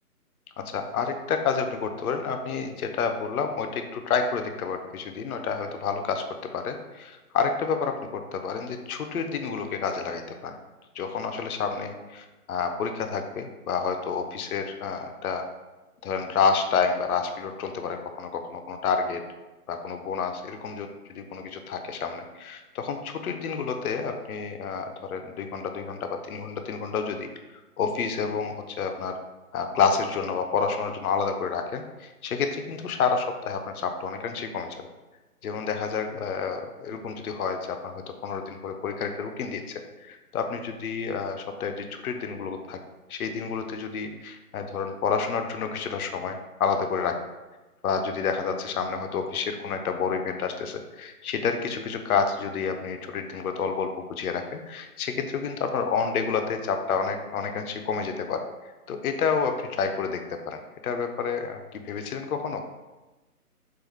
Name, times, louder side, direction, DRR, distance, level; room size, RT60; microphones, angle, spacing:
voice 1, 0.7-6.2 6.5-10.6 10.9-15.4 16.0-19.2 19.7-27.3 27.8-29.2 29.5-34.9 35.4-42.8 43.1-47.2 47.8-58.4 58.9-62.6, left 5 dB, 65° left, 6 dB, 0.5 m, -29 dB
4.0 x 2.4 x 3.1 m, 1.1 s
figure-of-eight pair, 155°, 47 cm